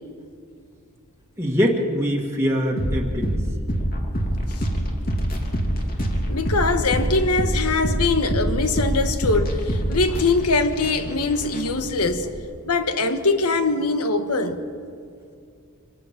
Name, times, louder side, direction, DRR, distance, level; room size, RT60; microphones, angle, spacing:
voice 1, 1.4-3.4, equal, 10° right, 1.8 m, -23 dB
sound 1, 2.8-12.4, equal, 40° left, 2.7 m, -25 dB
voice 2, 6.3-12.3 12.6-14.6, left 3 dB, 80° left, 1.3 m, -22 dB
25.5 x 17.5 x 5.9 m
head